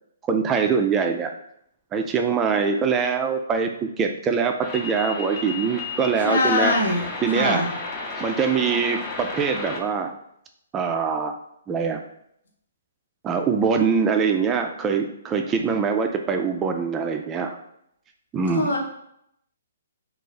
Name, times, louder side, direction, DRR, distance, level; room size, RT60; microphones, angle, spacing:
voice 1, 0.3-1.3 1.9-6.8 7.2-7.6 8.2-10.2 10.7-11.3 11.7-12.0 13.2-17.6 18.3-18.7, right 5 dB, 20° right, 5 dB, 0.3 m, -23 dB
sound 1, 4.6-9.8, left 3 dB, 30° left, 0.6 m, -33 dB
voice 2, 6.2-7.0 7.3-7.7 18.5-18.8, left 2 dB, 75° left, 0 dB, 0.9 m, -22 dB
2.6 x 2.4 x 3.9 m, 0.74 s
hypercardioid pair, 140°, 0 cm